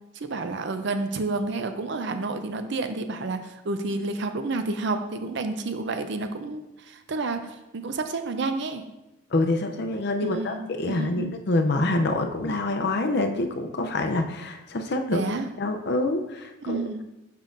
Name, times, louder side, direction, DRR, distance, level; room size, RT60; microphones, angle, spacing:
voice 1, 0.2-8.9 10.2-11.3 15.1-15.5 16.6-17.0, right 3 dB, 55° right, 8 dB, 0.5 m, -30 dB
voice 2, 9.3-15.2 15.6-16.9, left 2 dB, 50° left, 5 dB, 0.5 m, -26 dB
7.1 x 5.5 x 2.5 m, 0.96 s
head